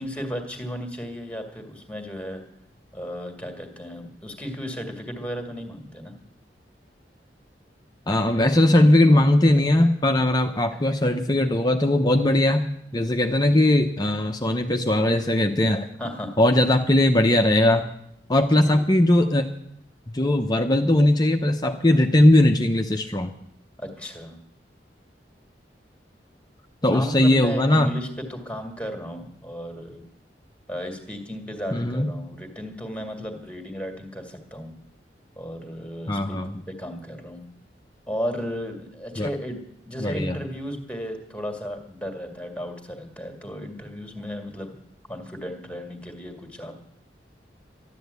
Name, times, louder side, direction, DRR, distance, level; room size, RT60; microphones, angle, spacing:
voice 1, 0.0-2.4 2.9-6.1 10.7-10.8 16.0-16.4 18.4-18.9 23.8-24.4 26.9-30.0 30.7-34.7 35.4-37.4 38.1-39.6 39.9-44.8 45.1-46.8, equal, 5° left, 5 dB, 2.0 m, -34 dB
voice 2, 8.1-12.6 12.9-15.9 16.4-17.9 18.3-19.5 20.1-23.3 26.8-27.9 31.7-32.1 36.1-36.5 39.2-39.3 40.0-40.4, left 1 dB, 25° left, 4 dB, 0.8 m, -19 dB
12.5 x 11.5 x 8.2 m, 0.74 s
head